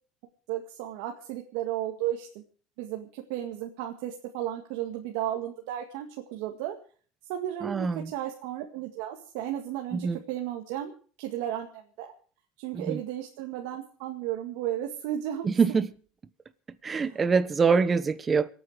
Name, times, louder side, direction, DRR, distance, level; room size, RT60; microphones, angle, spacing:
voice 1, 0.5-2.4 2.8-6.7 7.3-10.9 11.2-12.1 12.6-15.5 16.9-17.2, right 12 dB, 80° right, 1.9 m, -34 dB
voice 2, 7.6-8.1 10.0-10.2 12.7-13.0 15.4-15.9 16.8-18.5, right 5 dB, 25° right, 1.2 m, -24 dB
26.5 x 9.2 x 4.9 m
supercardioid pair, 105°, 0 cm